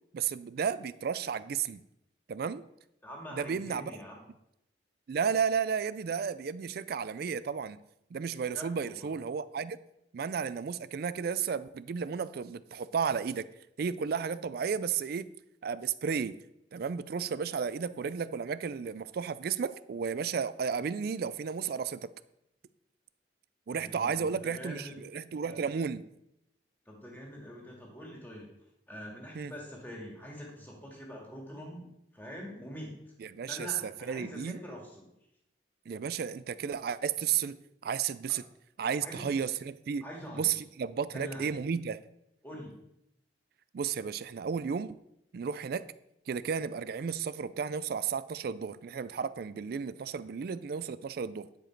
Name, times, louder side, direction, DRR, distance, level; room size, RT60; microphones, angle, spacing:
voice 1, 0.1-1.8 2.3-2.6 3.4-3.9 5.1-7.8 8.1-9.8 10.1-13.5 13.8-15.3 15.6-16.4 16.7-22.1 23.7-26.1 29.4-29.5 33.2-33.7 34.1-34.6 35.9-37.6 37.8-38.4 38.8-40.0 40.4-42.0 43.7-45.0 45.3-45.9 46.3-51.5, right 6 dB, 55° right, 16 dB, 0.3 m, -33 dB
voice 2, 3.0-4.3 8.5-9.1 23.7-25.0 25.5-26.0 26.9-28.5 28.9-33.0 33.4-35.1 38.3-38.4 39.0-39.5 40.0-40.5 41.1-41.6 42.4-42.8, equal, 10° left, -2 dB, 2.0 m, -44 dB
10.0 x 5.0 x 4.5 m, 0.81 s
head